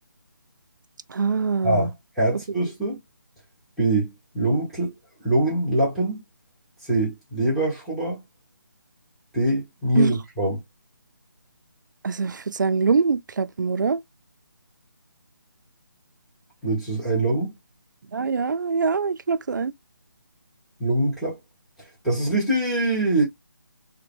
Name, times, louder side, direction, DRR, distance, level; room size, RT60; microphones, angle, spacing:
voice 1, 1.1-1.9 10.0-10.1 12.0-14.0 18.1-19.7, right 5 dB, 65° right, 0.4 m, -23 dB
voice 2, 2.2-3.0 3.8-4.9 5.2-6.2 6.8-8.2 9.3-10.6 16.6-17.5 20.8-21.4 22.0-23.2, right 1 dB, ahead, 0.6 m, -23 dB
3.4 x 2.2 x 3.3 m
hypercardioid pair, 170°, 11 cm